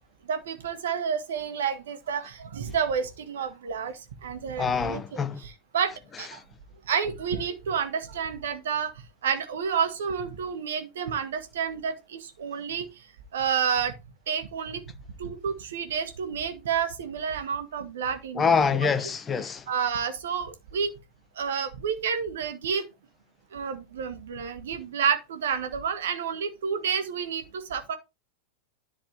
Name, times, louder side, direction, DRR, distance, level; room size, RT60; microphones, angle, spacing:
voice 1, 0.3-6.4 6.9-8.9 9.2-12.9 13.3-14.0 14.3-14.8 15.2-18.6 19.7-20.9 21.4-22.9 23.5-28.0, right 7 dB, 60° right, 1.5 m, -30 dB
voice 2, 4.6-5.4 18.4-19.6, left 6 dB, 20° left, 0.9 m, -25 dB
10.5 x 4.2 x 4.4 m
figure-of-eight pair, 90°, 0 cm